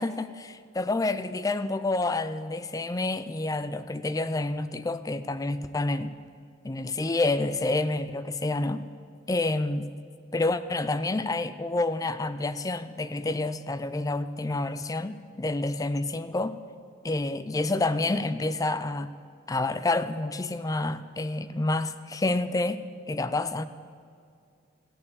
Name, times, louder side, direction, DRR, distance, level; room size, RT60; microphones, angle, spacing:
voice 1, 0.0-6.1 6.6-8.8 9.3-9.9 10.3-16.6 17.0-19.1 19.5-23.7, left 2 dB, 15° left, 12 dB, 0.4 m, -28 dB
16.0 x 6.7 x 8.6 m, 2.3 s
head